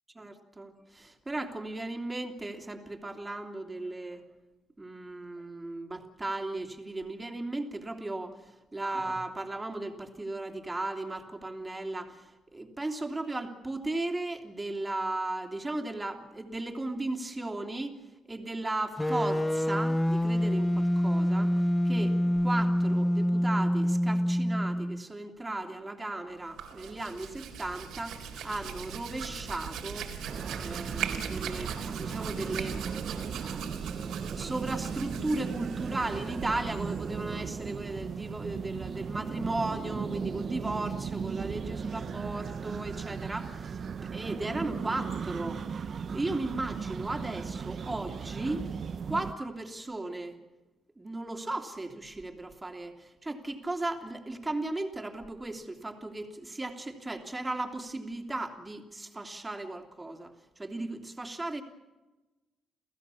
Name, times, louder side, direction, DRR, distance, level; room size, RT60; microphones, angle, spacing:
voice 1, 0.1-4.2 4.8-18.0 18.2-21.6 21.8-30.1 30.6-32.8 33.2-48.6 49.1-50.4 51.0-61.6, right 2 dB, 15° right, 4 dB, 3.0 m, -36 dB
sound 1, 19.0-25.0, equal, 10° left, 0.7 m, -26 dB
Hands, 26.4-37.8, right 7 dB, 85° right, 3.9 m, -40 dB
sound 2, 30.2-49.3, right 6 dB, 50° right, 1.0 m, -37 dB
30.0 x 16.0 x 7.1 m, 1.1 s
cardioid pair, 90°, 0 cm